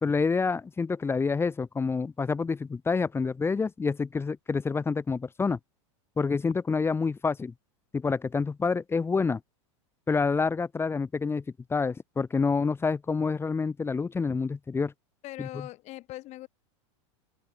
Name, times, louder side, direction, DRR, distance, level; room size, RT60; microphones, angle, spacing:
voice 1, 0.0-5.6 6.2-7.5 7.9-9.4 10.1-11.4 11.7-14.9 15.4-15.5, left 4 dB, 15° left, 2.3 m, -27 dB
voice 2, 15.2-16.5, left 17 dB, 45° left, 6.1 m, -41 dB
supercardioid pair, 125°, 16 cm